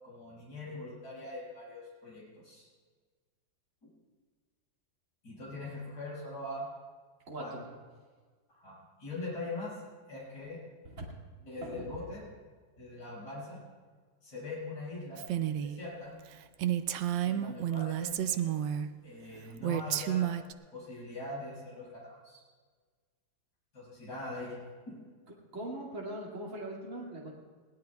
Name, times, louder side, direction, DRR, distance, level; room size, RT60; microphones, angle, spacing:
voice 1, 0.0-2.7 5.2-6.7 7.4-7.5 8.5-8.7 9.0-9.8 10.1-10.6 11.4-12.2 12.8-13.6 14.2-15.3 15.6-16.1 17.2-18.5 19.0-20.3 20.7-22.4 23.7-24.5, left 2 dB, 65° left, -7 dB, 6.4 m, -42 dB
voice 2, 7.3-7.6 10.8-11.1 11.6-11.9 25.5-27.3, right 1 dB, 45° right, -4 dB, 2.7 m, -40 dB
Female speech woman speaking, 15.2-15.8 16.2-16.3 16.6-18.9 19.6-20.5, right 11 dB, 90° right, 1.3 m, -31 dB
22.0 x 18.0 x 2.3 m, 1.5 s
omnidirectional pair, 1.9 m